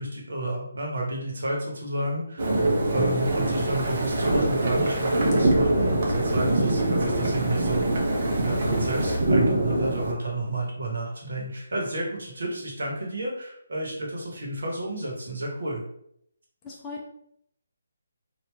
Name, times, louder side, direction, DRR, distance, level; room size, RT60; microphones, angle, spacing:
voice 1, 0.0-2.6 2.9-8.1 8.4-15.8, right 1 dB, 60° right, -2 dB, 1.1 m, -31 dB
sound 1, 2.4-10.1, right 1 dB, 45° right, 0.7 m, -24 dB
voice 2, 2.8-3.2 16.6-17.1, left 3 dB, 20° left, -3 dB, 0.6 m, -39 dB
2.9 x 2.5 x 3.3 m, 0.71 s
figure-of-eight pair, 145°, 0 cm